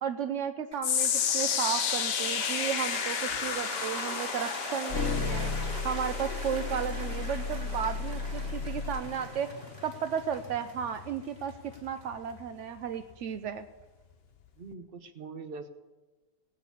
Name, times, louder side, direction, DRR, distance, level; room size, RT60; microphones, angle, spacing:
voice 1, 0.0-5.5 5.8-9.5 9.8-11.5 11.8-13.7, right 8 dB, 70° right, 9 dB, 0.7 m, -34 dB
Cheering / Applause, 0.7-12.9, right 1 dB, 25° right, 1.8 m, -41 dB
sound 1, 0.8-13.1 13.5-13.8 14.5-14.6, left 9 dB, 85° left, 0.5 m, -34 dB
sound 2, 3.3-3.4 4.9-9.0, left 4 dB, 50° left, 1.4 m, -34 dB
voice 2, 14.6-15.7, right 4 dB, 40° right, 9 dB, 1.0 m, -42 dB
18.5 x 6.3 x 8.3 m, 1.2 s
omnidirectional pair, 1.9 m